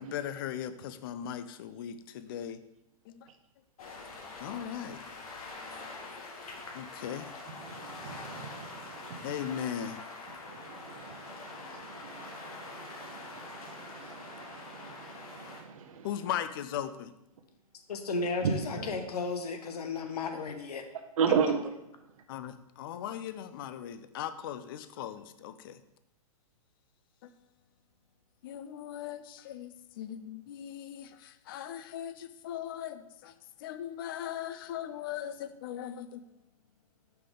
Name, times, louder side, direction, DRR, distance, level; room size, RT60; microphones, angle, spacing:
voice 1, 0.0-2.6 3.1-3.3 3.8-7.3 9.2-10.0 16.0-17.1 18.8-18.9 22.3-25.8 27.2-27.3 28.4-36.2, left 10 dB, 35° left, 0.4 m, -39 dB
sound 1, 3.8-15.6, left 3 dB, 70° left, 1.4 m, -45 dB
voice 2, 7.5-9.5 10.4-16.3 18.2-19.0 20.9-21.7 22.0-22.2, right 6 dB, 60° right, 0.8 m, -35 dB
voice 3, 17.9-20.8, left 3 dB, 85° left, 0.9 m, -34 dB
5.8 x 3.7 x 5.0 m
hypercardioid pair, 155°, 19 cm